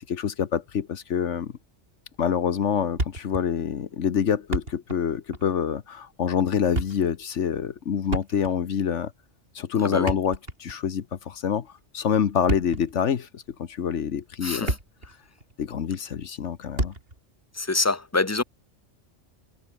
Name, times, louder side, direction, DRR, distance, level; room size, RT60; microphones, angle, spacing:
voice 1, 0.0-1.5 2.2-9.1 9.5-11.7 11.9-14.7 15.6-16.9, left 8 dB, 75° left, 1.4 m, -26 dB
Thump thud, 3.0-3.5 3.8-3.9 4.3-5.1 5.3-5.5 6.5-7.1 8.1-8.7 9.9-10.9 12.3-12.9 13.6-13.8 14.3-15.1 15.4-15.5 16.8-17.2, right 2 dB, 50° right, 5.4 m, -30 dB
voice 2, 14.4-14.8 17.5-18.4, left 3 dB, 15° left, 1.6 m, -25 dB
omnidirectional pair, 1.2 m